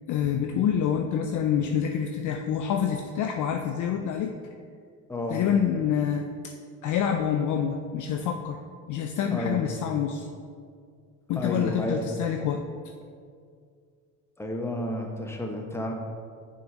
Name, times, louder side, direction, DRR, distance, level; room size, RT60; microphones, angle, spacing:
voice 1, 0.1-4.3 5.3-6.5 6.8-8.6 8.9-10.3 11.3-12.6, left 8 dB, 45° left, 4 dB, 0.4 m, -27 dB
voice 2, 5.1-5.4 9.3-9.7 11.4-12.0 14.4-15.9, left 1 dB, 5° left, 1 dB, 0.9 m, -31 dB
6.7 x 3.8 x 3.8 m, 2.2 s
hypercardioid pair, 65°, 45 cm